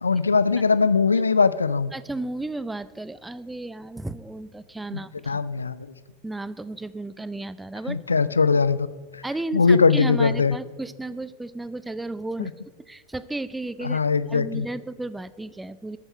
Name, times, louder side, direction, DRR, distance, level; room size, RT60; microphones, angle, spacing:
voice 1, 0.0-1.9 4.9-5.0 5.3-5.8 7.9-8.9 9.1-9.2 9.5-10.6 12.4-12.5 13.8-14.7, left 4 dB, 75° left, 16 dB, 0.4 m, -20 dB
voice 2, 1.9-5.4 6.2-8.0 9.2-12.5 12.9-14.0 14.3-16.0, right 2 dB, 5° right, 17 dB, 0.4 m, -33 dB
12.5 x 9.0 x 5.6 m, 1.5 s
figure-of-eight pair, 90°, 0 cm